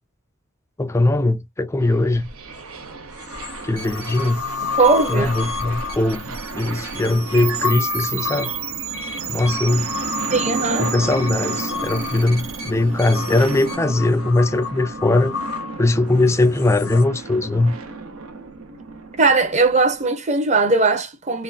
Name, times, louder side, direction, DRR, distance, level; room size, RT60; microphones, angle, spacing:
voice 1, 0.8-2.2 3.6-4.4 5.1-8.5 9.3-9.9 10.8-15.3 15.8-17.8, left 2 dB, 15° left, 0.3 m, -20 dB
sound 1, 1.8-20.0, right 3 dB, 90° right, 0.9 m, -34 dB
sound 2, 2.5-2.6 3.2-17.0, left 7 dB, 85° left, 0.8 m, -32 dB
sound 3, 3.8-13.7, right 8 dB, 70° right, 1.1 m, -32 dB
voice 2, 4.8-5.4 10.3-10.9 19.2-21.4, right 3 dB, 35° right, 0.8 m, -19 dB
3.7 x 2.2 x 2.4 m
head